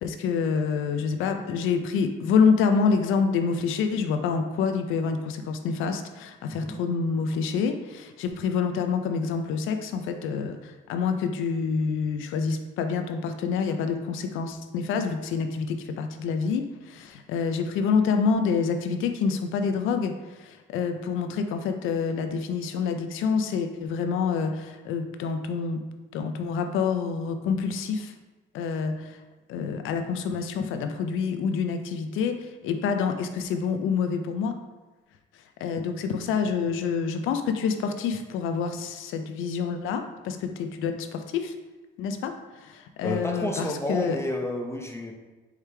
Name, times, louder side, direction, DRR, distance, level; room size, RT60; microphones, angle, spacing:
voice 1, 0.0-20.1 20.4-25.8 26.1-28.1 28.5-29.2 29.5-34.6 35.6-41.5 42.0-42.3 42.6-44.2, left 5 dB, 90° left, 6 dB, 0.5 m, -27 dB
voice 2, 43.0-45.1, left 1 dB, 15° left, 1 dB, 0.6 m, -30 dB
4.8 x 3.2 x 3.3 m, 1.2 s
cardioid pair, 90°, 20 cm